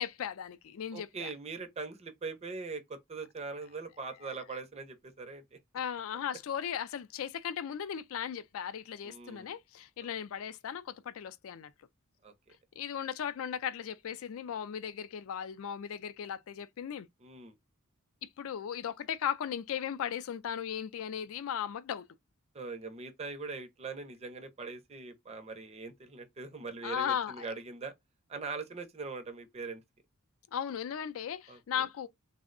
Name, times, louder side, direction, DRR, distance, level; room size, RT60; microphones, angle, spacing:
voice 1, 0.0-1.3 4.2-4.3 5.7-11.7 12.8-17.1 18.2-22.0 26.8-27.5 30.5-32.1, left 8 dB, 70° left, 0.4 m, -37 dB
voice 2, 0.9-5.6 9.0-9.5 12.2-12.3 17.2-17.5 22.5-27.9 28.3-29.8 31.5-31.8, right 4 dB, 30° right, 0.5 m, -41 dB
3.5 x 2.0 x 2.4 m
head